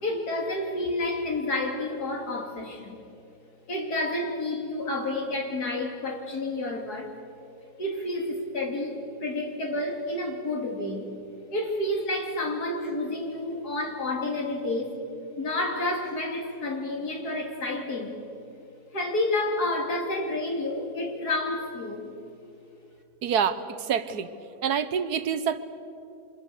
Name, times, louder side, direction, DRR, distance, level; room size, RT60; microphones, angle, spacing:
voice 1, 0.0-3.0 3.7-7.1 7.8-11.1 11.5-14.9 15.4-18.2 18.9-22.1, left 2 dB, 70° left, 1 dB, 3.4 m, -30 dB
voice 2, 23.2-24.3 24.6-25.6, right 7 dB, 70° right, 11 dB, 1.6 m, -26 dB
28.0 x 25.5 x 6.8 m, 2.7 s
omnidirectional pair, 1.7 m